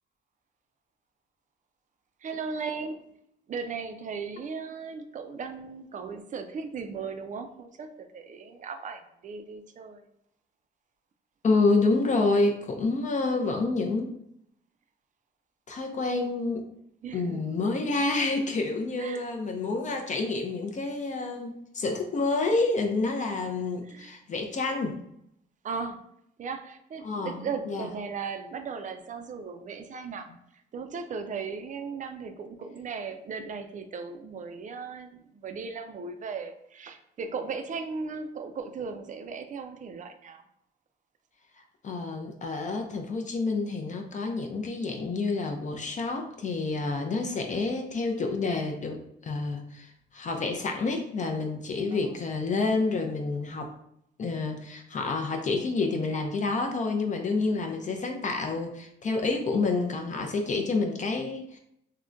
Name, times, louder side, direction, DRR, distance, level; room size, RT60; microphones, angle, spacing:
voice 1, 2.2-3.2 3.5-10.1 17.0-17.7 19.0-19.2 23.8-24.1 25.6-26.0 26.4-40.4 51.9-52.2, right 5 dB, 40° right, 7 dB, 0.4 m, -37 dB
voice 2, 11.4-14.1 15.7-16.7 17.1-25.0 27.0-27.4 27.7-27.9 41.6-53.7 54.2-61.6, left 3 dB, 40° left, 3 dB, 0.5 m, -28 dB
3.6 x 2.1 x 2.4 m, 0.74 s
cardioid pair, 90°, 20 cm